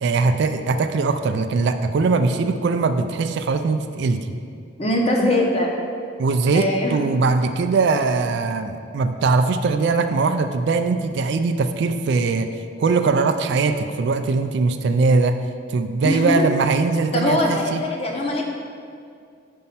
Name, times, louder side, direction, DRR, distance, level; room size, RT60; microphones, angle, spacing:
voice 1, 0.0-4.3 6.2-12.5 12.8-15.4 15.7-17.9, right 4 dB, 55° right, 8 dB, 0.3 m, -21 dB
voice 2, 4.8-5.7 6.5-7.0 16.0-16.4 17.1-18.4, left 1 dB, 30° left, -1 dB, 0.8 m, -21 dB
5.4 x 4.3 x 5.7 m, 2.3 s
head